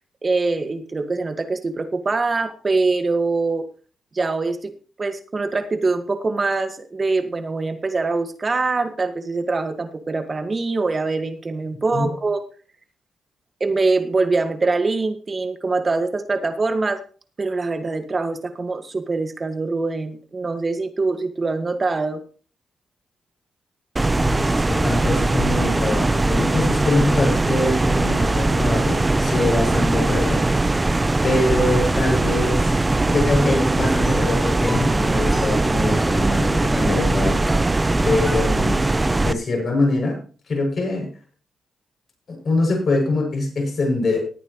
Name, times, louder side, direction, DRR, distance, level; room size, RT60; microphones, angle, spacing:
voice 1, 0.2-3.7 4.1-4.7 5.0-12.4 13.6-17.0 17.4-22.2, right 3 dB, 40° right, 8 dB, 1.9 m, -23 dB
sound 1, 24.0-39.3, right 2 dB, 20° right, 0.7 m, -20 dB
voice 2, 24.1-30.4 31.2-32.8 33.0-37.7 38.0-38.8 39.1-40.2 40.5-41.1 42.3-44.2, left 2 dB, 55° left, 0 dB, 7.3 m, -23 dB
sound 2, 33.0-38.8, equal, 5° right, 3.3 m, -34 dB
18.5 x 9.1 x 3.2 m, 0.40 s
supercardioid pair, 60°, 0 cm